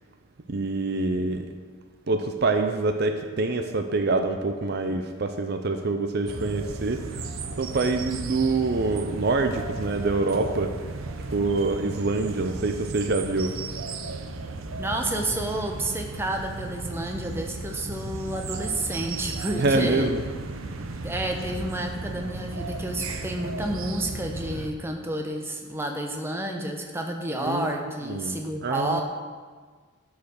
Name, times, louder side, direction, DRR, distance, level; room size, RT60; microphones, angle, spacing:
voice 1, 0.5-1.5 2.1-7.2 7.6-10.7 11.3-13.6 19.6-20.2 27.4-27.8 28.0-29.0, right 3 dB, 50° right, 7 dB, 0.5 m, -26 dB
sound 1, 6.3-24.7, right 3 dB, 90° right, 0.7 m, -35 dB
voice 2, 14.8-20.1 21.0-29.0, right 1 dB, 10° right, 2 dB, 0.8 m, -30 dB
10.5 x 4.8 x 6.4 m, 1.5 s
head